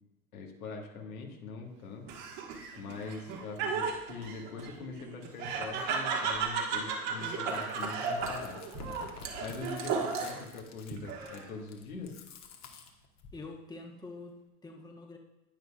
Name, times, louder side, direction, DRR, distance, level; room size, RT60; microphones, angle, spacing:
voice 1, 0.3-2.0 2.8-8.6 9.4-12.2, left 4 dB, 75° left, 1 dB, 1.7 m, -43 dB
Laughter, 2.1-10.5 10.9-11.6, right 5 dB, 50° right, 1.7 m, -35 dB
sound 1, 7.1-12.5, right 5 dB, 30° right, 1.4 m, -51 dB
Chewing mastication, 7.4-13.4, left 5 dB, 40° left, 1.3 m, -51 dB
voice 2, 13.3-15.2, left 3 dB, 10° left, 2 dB, 1.1 m, -46 dB
10.0 x 9.6 x 2.4 m, 0.98 s
figure-of-eight pair, 75°, 43 cm